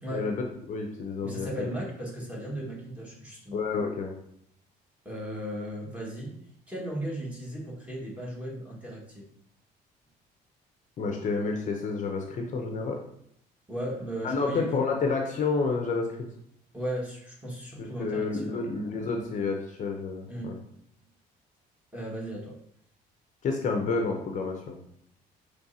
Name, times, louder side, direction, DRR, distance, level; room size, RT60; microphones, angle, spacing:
voice 1, 0.1-1.7 3.5-4.2 11.0-13.0 14.2-16.1 17.8-20.6 23.4-24.8, left 4 dB, 45° left, 3 dB, 0.7 m, -29 dB
voice 2, 1.2-3.6 5.0-6.3 6.7-9.3 13.7-14.9 16.7-18.7 20.3-20.6 21.9-22.6, right 1 dB, 10° right, -4 dB, 1.6 m, -36 dB
6.0 x 3.2 x 2.7 m, 0.68 s
cardioid pair, 110°, 17 cm